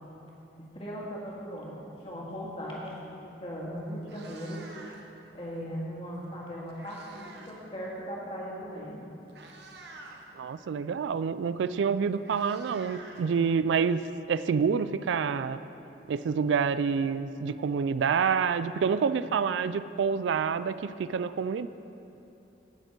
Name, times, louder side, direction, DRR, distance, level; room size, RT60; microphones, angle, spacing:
voice 1, 0.6-4.7 5.3-9.1, equal, 30° left, -4 dB, 2.0 m, -38 dB
Meow, 3.9-5.2 6.3-7.6 7.9-8.2 8.9-9.0 9.3-10.2 11.5-11.6 11.9-13.8, right 3 dB, 70° right, 1.2 m, -49 dB
voice 2, 10.4-14.0 14.3-15.6 16.1-21.7, right 6 dB, 85° right, 14 dB, 0.3 m, -27 dB
17.5 x 6.6 x 4.6 m, 2.9 s
head